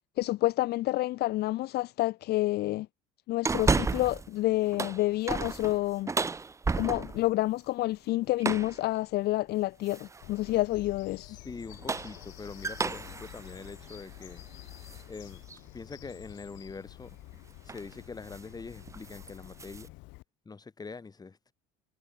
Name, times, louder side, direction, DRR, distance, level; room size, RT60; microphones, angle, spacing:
voice 1, 0.2-2.9 3.3-6.1 6.7-11.3, left 17 dB, 55° left, 0.6 m, -29 dB
sound 1, 3.4-4.3 4.6-7.3 8.4-8.8 9.9-10.3 11.6-15.0 15.5-15.6 17.1-17.3 17.7-17.9 18.2-18.5 18.8-19.9, right 4 dB, 15° right, 0.7 m, -33 dB
Bird vocalization bird call bird song, 10.2-20.2, left 23 dB, 75° left, 2.4 m, -49 dB
voice 2, 11.2-14.4 15.1-15.4 15.7-17.2 17.6-19.9 20.4-21.5, left 4 dB, 20° left, 3.3 m, -44 dB
supercardioid pair, 105°, 19 cm